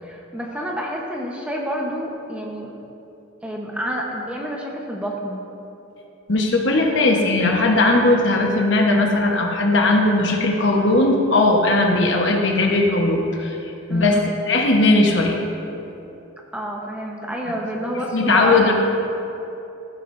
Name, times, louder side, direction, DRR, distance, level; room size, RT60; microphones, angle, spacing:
voice 1, 0.0-2.7 3.4-5.4 13.9-14.2 16.5-18.7, equal, 5° right, -2 dB, 1.0 m, -29 dB
voice 2, 6.3-13.6 13.9-15.4 17.5-17.6 18.1-18.7, left 2 dB, 60° left, 1 dB, 1.1 m, -18 dB
15.0 x 10.0 x 2.6 m, 3.0 s
head